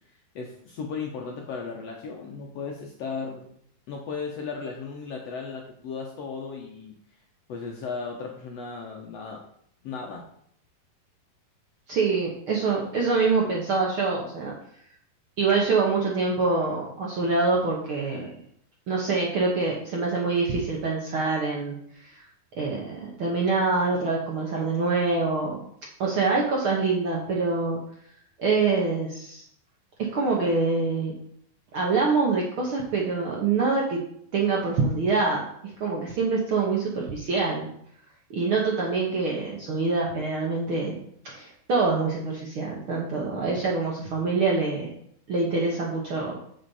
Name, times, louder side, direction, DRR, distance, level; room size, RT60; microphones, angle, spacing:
voice 1, 0.3-3.5 3.9-6.9 7.5-9.4 9.8-10.2, left 5 dB, 75° left, 0 dB, 1.5 m, -35 dB
voice 2, 11.9-14.5 15.4-18.3 18.9-22.2 22.6-25.6 26.0-27.8 28.4-29.4 30.1-31.1 31.7-34.0 34.3-35.4 35.8-37.7 38.3-44.9 45.3-46.4, right 4 dB, 65° right, -2 dB, 1.3 m, -25 dB
8.0 x 7.4 x 4.1 m, 0.68 s
omnidirectional pair, 4.1 m